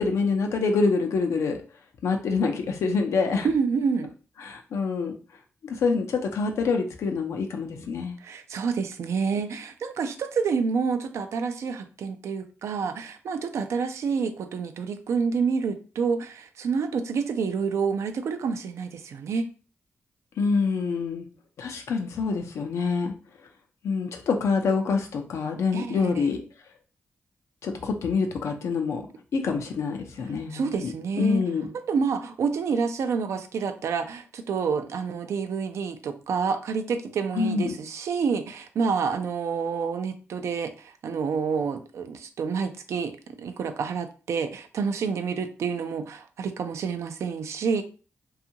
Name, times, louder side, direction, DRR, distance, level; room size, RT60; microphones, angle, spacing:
voice 1, 0.0-1.6 2.0-3.5 4.4-5.1 5.6-8.2 20.4-21.3 21.6-23.1 23.8-26.4 27.6-29.1 29.3-30.9 31.2-31.7 37.3-37.8, left 4 dB, 85° left, 0.5 m, -26 dB
voice 2, 3.4-4.1 8.2-19.4 25.7-26.3 30.5-31.4 31.7-47.8, right 5 dB, 80° right, 0.4 m, -28 dB
2.6 x 2.3 x 2.8 m
cardioid pair, 65°, 5 cm